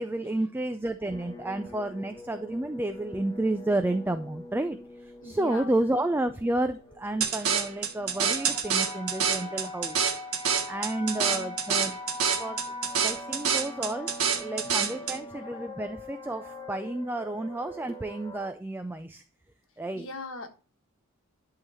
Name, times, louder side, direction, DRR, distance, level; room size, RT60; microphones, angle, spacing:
voice 1, 0.0-4.8 5.0-10.0 10.7-12.0 12.4-12.6 13.0-19.2 19.8-20.1, right 1 dB, 10° right, 0.3 m, -31 dB
sound 1, 1.1-18.5, left 2 dB, 20° left, 1.1 m, -42 dB
voice 2, 5.2-5.7 9.2-9.8 11.0-11.5 14.9-15.3 19.9-20.5, left 2 dB, 60° left, 1.5 m, -42 dB
sound 2, 7.2-15.2, right 7 dB, 75° right, 1.4 m, -27 dB
11.0 x 3.9 x 4.2 m
head